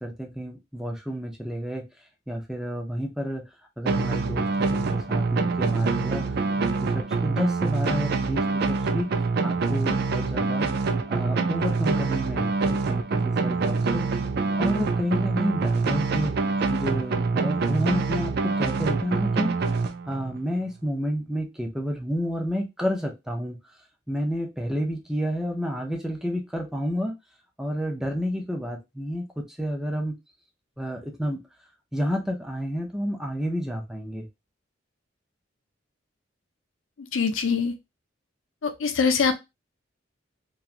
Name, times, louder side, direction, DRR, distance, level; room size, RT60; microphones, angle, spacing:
voice 1, 0.0-1.8 2.3-3.4 3.8-9.1 9.4-10.7 11.1-14.0 14.5-16.3 16.7-19.5 20.1-23.6 24.1-27.1 27.6-30.1 30.8-31.4 31.9-34.3, equal, 5° right, 2 dB, 0.5 m, -30 dB
sound 1, 3.9-20.4, right 4 dB, 55° right, 0.4 m, -25 dB
voice 2, 37.1-37.7 38.6-39.4, left 5 dB, 90° left, 8 dB, 0.5 m, -23 dB
2.9 x 2.3 x 2.4 m, 0.22 s
head